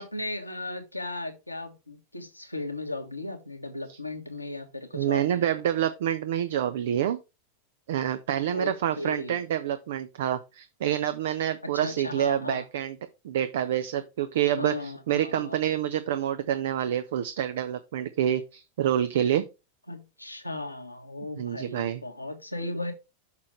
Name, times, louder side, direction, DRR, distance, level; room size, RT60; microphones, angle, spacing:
voice 1, 0.0-5.6 8.5-9.4 11.6-12.6 14.6-15.6 19.9-22.9, left 2 dB, 85° left, 1.6 m, -36 dB
voice 2, 4.9-7.2 7.9-13.0 13.2-19.4 21.4-22.0, right 10 dB, 55° right, 0.6 m, -27 dB
6.8 x 6.3 x 3.1 m
figure-of-eight pair, 90°, 0 cm